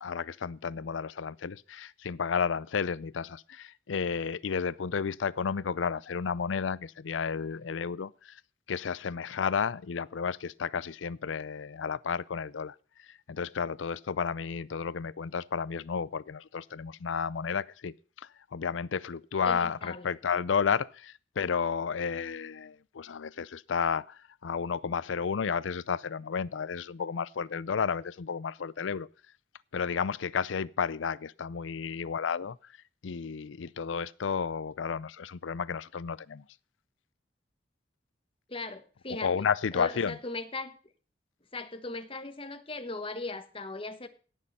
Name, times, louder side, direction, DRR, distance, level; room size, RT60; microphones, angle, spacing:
voice 1, 0.0-8.4 8.7-12.7 13.1-29.1 29.7-32.6 33.0-36.4 39.1-40.2, left 6 dB, 90° left, 0.5 m, -32 dB
voice 2, 19.4-20.1 38.5-39.3 39.7-40.8 41.5-44.1, left 3 dB, 30° left, 1.2 m, -38 dB
17.5 x 6.6 x 5.4 m
head